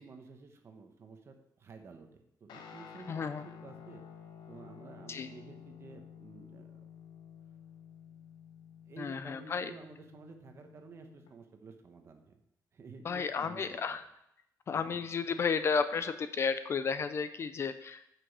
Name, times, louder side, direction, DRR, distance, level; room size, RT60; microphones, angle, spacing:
voice 1, 0.0-4.0 4.5-6.7 8.8-12.4 12.7-14.0 14.7-15.0, right 4 dB, 40° right, 5 dB, 1.1 m, -52 dB
Guitar, 2.5-11.3, left 8 dB, 80° left, 1.0 m, -52 dB
voice 2, 3.1-3.4 5.1-5.3 9.0-9.7 13.0-14.0 14.7-18.1, left 5 dB, 35° left, 11 dB, 0.4 m, -33 dB
8.2 x 6.1 x 4.7 m, 0.78 s
cardioid pair, 165°, 7 cm